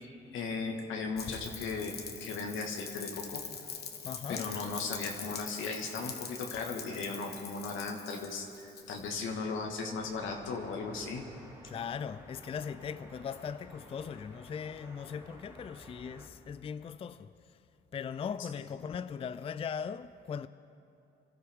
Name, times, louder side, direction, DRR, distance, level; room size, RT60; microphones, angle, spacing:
voice 1, 0.3-3.4 4.3-11.2 18.6-18.7, left 4 dB, 80° left, 1.6 m, -37 dB
Rain, 1.2-9.2, left 6 dB, 55° left, 1.2 m, -43 dB
voice 2, 4.0-4.5 11.7-17.3 17.9-20.5, left 7 dB, 30° left, 0.3 m, -39 dB
sound 1, 9.9-16.3, right 1 dB, 15° right, 2.9 m, -53 dB
26.0 x 13.0 x 3.6 m
cardioid pair, 90°, 20 cm